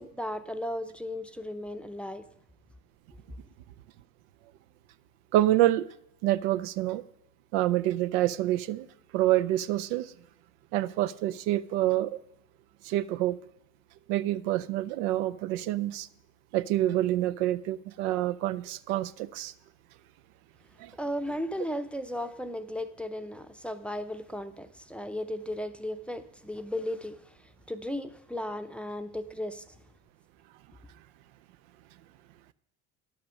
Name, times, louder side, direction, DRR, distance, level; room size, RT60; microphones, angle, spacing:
voice 1, 0.0-2.3 21.0-29.7, left 1 dB, 5° left, 0.6 m, -35 dB
voice 2, 5.3-5.9 6.2-7.0 7.5-8.9 9.1-10.1 10.7-12.2 12.8-13.4 14.1-16.1 16.5-19.5 20.8-20.9, right 14 dB, 75° right, 0.5 m, -27 dB
10.5 x 5.8 x 6.3 m
supercardioid pair, 80°, 36 cm